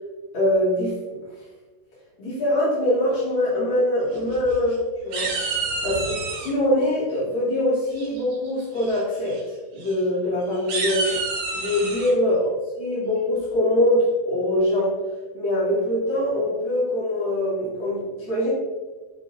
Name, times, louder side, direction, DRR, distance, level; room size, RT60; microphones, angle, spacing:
voice 1, 0.3-1.0 2.2-5.3 5.8-9.4 9.7-11.2 11.5-12.5 12.8-15.0 15.3-18.5, left 1 dB, 65° left, -9 dB, 1.2 m, -23 dB
sound 1, 4.1-4.8 5.1-6.5 7.9-8.3 8.8-9.0 9.3-9.4 9.8-9.9 10.5-12.1, right 3 dB, 65° right, 3.1 m, -29 dB
6.9 x 6.4 x 2.5 m, 1.3 s
omnidirectional pair, 5.6 m